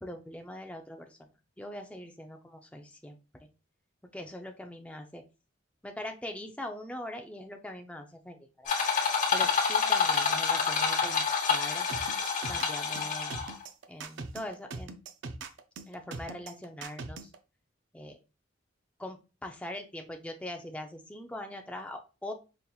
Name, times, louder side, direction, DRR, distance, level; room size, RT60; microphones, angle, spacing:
voice 1, 0.0-1.3 1.6-3.2 4.1-5.2 5.8-8.7 9.3-11.9 12.5-13.5 13.9-15.0 15.9-17.3 17.9-18.2 19.0-22.3, left 1 dB, 5° left, 3 dB, 0.4 m, -42 dB
sound 1, 8.7-13.6, left 6 dB, 40° left, 1.0 m, -28 dB
sound 2, 11.9-17.4, right 3 dB, 70° right, 0.4 m, -41 dB
5.2 x 2.9 x 2.3 m, 0.31 s
head